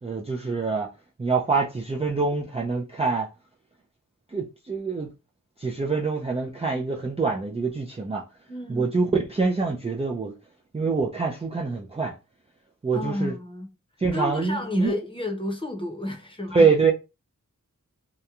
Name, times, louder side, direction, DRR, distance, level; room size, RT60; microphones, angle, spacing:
voice 1, 0.0-0.9 1.2-3.3 4.3-5.1 5.6-8.2 8.7-10.3 10.7-12.1 12.8-13.3 14.0-15.0 16.5-16.9, right 4 dB, 20° right, 0.3 m, -25 dB
voice 2, 8.5-8.9 12.9-13.7 14.1-16.7, left 1 dB, 15° left, 0.8 m, -31 dB
2.9 x 2.2 x 2.4 m
wide cardioid pair, 65°, 33 cm